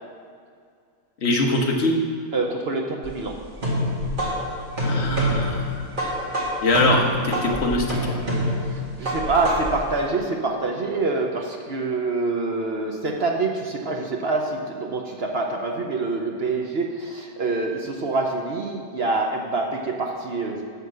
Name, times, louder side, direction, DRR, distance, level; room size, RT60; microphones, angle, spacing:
voice 1, 1.2-1.9 4.8-5.8 6.6-8.1, left 2 dB, 45° left, 1 dB, 1.3 m, -22 dB
voice 2, 2.3-3.4 8.7-20.6, right 3 dB, 50° right, 1 dB, 0.8 m, -26 dB
sound 1, 3.0-9.9, equal, 30° right, 1.9 m, -26 dB
11.0 x 3.9 x 7.5 m, 2.2 s
omnidirectional pair, 1.8 m